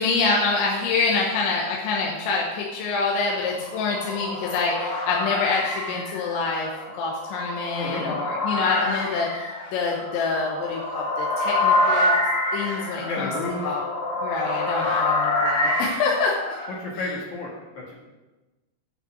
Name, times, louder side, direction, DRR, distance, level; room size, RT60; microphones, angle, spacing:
voice 1, 0.0-12.1 12.5-13.3 13.6-13.8 14.2-16.4, left 4 dB, 90° left, -2 dB, 3.4 m, -26 dB
sound 1, 3.3-16.7, left 2 dB, 45° left, 1.5 m, -27 dB
voice 2, 7.7-8.2 13.0-13.8 16.8-17.9, left 2 dB, 60° left, -2 dB, 2.1 m, -31 dB
9.1 x 5.5 x 7.6 m, 1.1 s
omnidirectional pair, 5.2 m